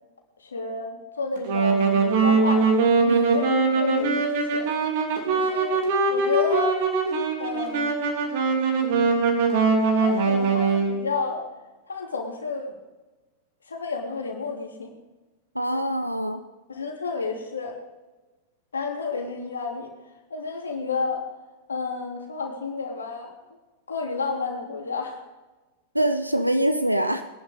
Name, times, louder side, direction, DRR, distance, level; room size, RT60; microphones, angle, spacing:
voice 1, 0.4-2.7 3.2-4.3 4.5-4.7 5.3-5.8 6.1-6.8 7.4-7.9 9.9-11.4 11.9-12.7 13.7-14.9 16.7-17.7 18.7-19.9 20.3-21.3 21.7-23.4 23.9-25.2, left 4 dB, 75° left, 1 dB, 2.9 m, -31 dB
Wind instrument woodwind instrument, 1.4-11.1, right 4 dB, 50° right, 3.2 m, -22 dB
voice 2, 3.1-3.4 15.5-16.4 25.9-27.2, right 1 dB, 90° right, 9 dB, 0.7 m, -24 dB
22.0 x 11.0 x 3.7 m, 1.2 s
figure-of-eight pair, 90°, 0 cm